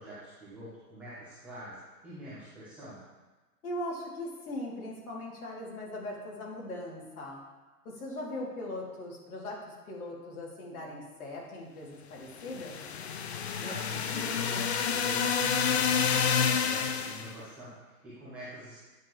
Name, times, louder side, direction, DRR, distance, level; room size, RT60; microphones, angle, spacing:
voice 1, 0.0-1.8 2.0-3.0 13.5-18.8, right 1 dB, 5° right, -13 dB, 0.5 m, -45 dB
voice 2, 3.6-7.4 7.8-12.8, left 1 dB, 60° left, -3 dB, 2.7 m, -39 dB
sound 1, 12.4-17.3, left 6 dB, 45° left, 0.6 m, -29 dB
9.1 x 7.4 x 3.0 m, 1.2 s
hypercardioid pair, 145°, 48 cm